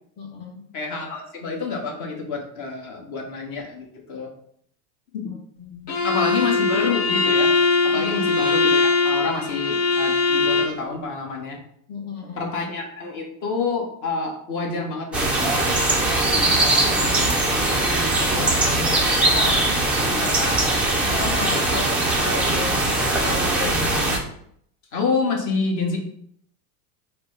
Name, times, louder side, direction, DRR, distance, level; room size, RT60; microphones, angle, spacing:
voice 1, 0.2-0.7 5.2-6.1 7.9-8.0 11.9-12.5 16.9-17.5 18.3-19.0 19.3-19.7 20.2-24.1, left 3 dB, 20° left, -3 dB, 0.7 m, -34 dB
voice 2, 0.7-4.3 5.1-5.3 6.0-7.5 7.8-11.6 12.3-15.7 20.0-20.2 24.9-26.0, left 4 dB, 40° left, 0 dB, 1.3 m, -28 dB
Bowed string instrument, 5.9-10.8, left 4 dB, 60° left, 1.2 m, -21 dB
sound 1, 15.1-24.2, right 2 dB, 5° right, 0.3 m, -21 dB
5.0 x 2.2 x 4.8 m, 0.67 s
supercardioid pair, 135°, 44 cm